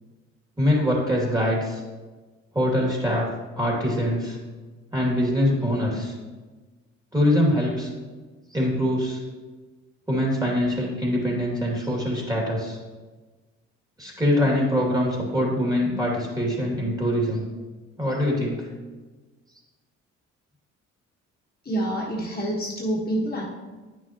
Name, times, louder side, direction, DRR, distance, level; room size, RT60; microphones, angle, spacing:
voice 1, 0.6-1.8 2.5-3.3 3.6-4.4 4.9-6.1 7.1-7.9 8.5-9.2 10.1-12.8 14.0-17.5 18.0-18.7, left 1 dB, 15° right, -2 dB, 2.5 m, -23 dB
voice 2, 21.6-23.4, right 1 dB, 30° left, -4 dB, 1.5 m, -27 dB
9.5 x 6.2 x 3.0 m, 1.3 s
supercardioid pair, 75°, 29 cm